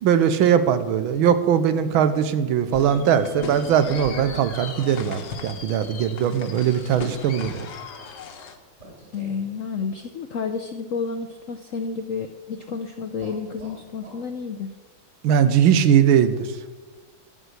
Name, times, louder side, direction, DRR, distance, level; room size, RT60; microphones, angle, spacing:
voice 1, 0.0-7.7 15.2-16.5, right 8 dB, 85° right, 11 dB, 1.6 m, -20 dB
sound 1, 1.8-5.8 6.7-6.8 8.8-9.6 13.2-14.3, right 1 dB, 35° right, 3.8 m, -44 dB
sound 2, 2.7-8.6, left 5 dB, 60° left, 1.5 m, -37 dB
voice 2, 9.1-14.7, left 5 dB, 75° left, 6 dB, 0.7 m, -30 dB
12.5 x 6.3 x 8.0 m, 1.3 s
omnidirectional pair, 2.2 m